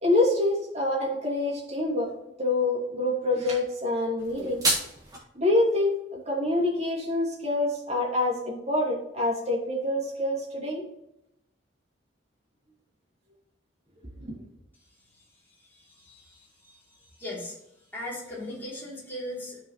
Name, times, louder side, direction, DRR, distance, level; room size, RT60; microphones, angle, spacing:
voice 1, 0.0-2.1 2.4-4.6 5.3-10.8 14.2-14.4, left 2 dB, 35° right, -3 dB, 2.6 m, -26 dB
sound 1, 4.2-5.2, right 1 dB, 20° right, 2.0 m, -28 dB
voice 2, 15.6-16.5 17.2-17.6 17.9-19.6, left 1 dB, 10° left, -7 dB, 3.2 m, -38 dB
13.0 x 4.9 x 3.2 m, 0.82 s
head